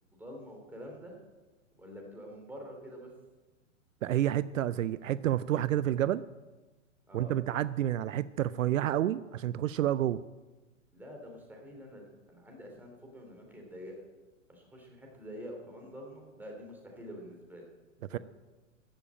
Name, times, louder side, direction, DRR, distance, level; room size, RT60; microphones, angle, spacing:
voice 1, 0.2-1.2 1.8-3.1 7.1-7.4 10.9-14.0 14.5-17.6 18.1-18.2, equal, 5° right, 0 dB, 3.1 m, -47 dB
voice 2, 4.0-6.2 7.1-10.2 18.1-18.2, right 12 dB, 75° right, 17 dB, 0.6 m, -29 dB
14.0 x 7.2 x 8.7 m, 1.2 s
hypercardioid pair, 130°, 39 cm